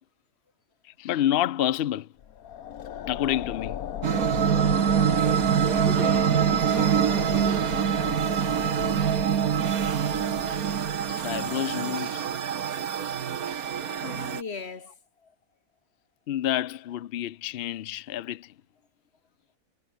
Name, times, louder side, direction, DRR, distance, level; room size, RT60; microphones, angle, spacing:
voice 1, 0.8-2.1 3.1-3.8 11.1-12.2 16.3-18.5, left 12 dB, 65° left, 0.6 m, -28 dB
sound 1, 2.2-11.5, left 10 dB, 85° left, 1.5 m, -37 dB
sound 2, 4.0-14.4, right 8 dB, 90° right, 1.7 m, -25 dB
voice 2, 5.6-7.8 13.2-13.3 13.8-14.9 15.2-15.3, left 5 dB, 45° left, 1.9 m, -38 dB
omnidirectional pair, 1.5 m